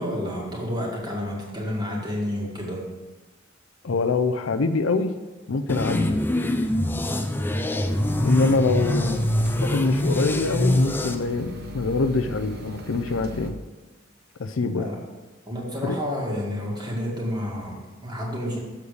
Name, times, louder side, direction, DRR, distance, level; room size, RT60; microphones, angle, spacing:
voice 1, 0.0-2.9 14.7-15.0 15.5-18.6, equal, 20° right, -2 dB, 2.0 m, -30 dB
voice 2, 3.8-5.2 5.5-6.2 8.2-9.3 9.6-13.6 14.4-14.9 15.8-16.0, left 3 dB, 75° left, 10 dB, 0.6 m, -24 dB
sound 1, 5.7-11.1, left 1 dB, 10° left, 0.5 m, -24 dB
sound 2, 7.8-13.5, left 1 dB, 50° right, 0.9 m, -37 dB
7.1 x 6.8 x 6.5 m, 1.2 s
head